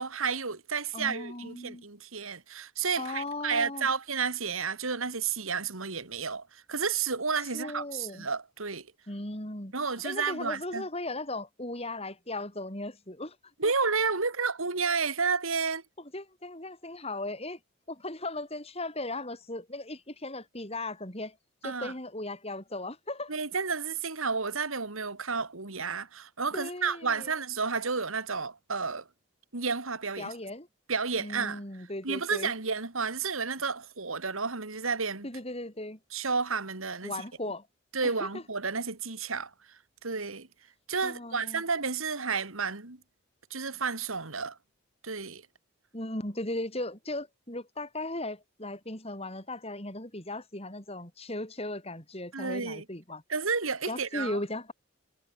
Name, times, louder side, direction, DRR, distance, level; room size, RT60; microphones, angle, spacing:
voice 1, 0.0-8.9 9.7-10.8 13.6-15.8 21.6-21.9 23.3-29.0 29.5-30.3 30.9-31.6 32.0-35.3 36.1-37.1 37.9-39.5 40.0-40.5 40.9-43.0 43.5-44.6 45.0-45.4 52.3-52.8 53.3-54.4, right 5 dB, 75° right, 2.4 m, -31 dB
voice 2, 0.9-1.9 3.0-3.9 7.5-8.3 9.1-9.7 10.0-13.4 13.6-13.7 16.0-17.6 17.9-21.4 21.6-23.3 26.5-27.3 30.2-30.7 31.2-32.5 35.2-36.0 37.0-37.7 38.0-38.4 41.0-41.6 45.9-53.2 53.9-54.7, left 2 dB, 30° left, 6.0 m, -37 dB
head